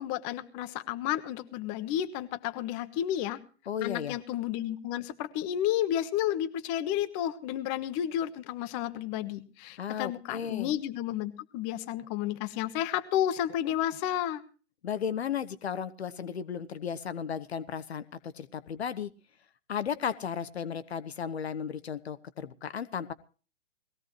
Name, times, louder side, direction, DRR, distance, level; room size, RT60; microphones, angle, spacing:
voice 1, 0.0-3.4 3.8-14.4, left 11 dB, 25° left, 10 dB, 1.2 m, -31 dB
voice 2, 3.7-4.2 9.8-10.7 14.8-19.1 19.7-23.1, left 8 dB, 60° left, 14 dB, 1.0 m, -35 dB
20.5 x 15.5 x 3.1 m, 0.37 s
figure-of-eight pair, 120°, 37 cm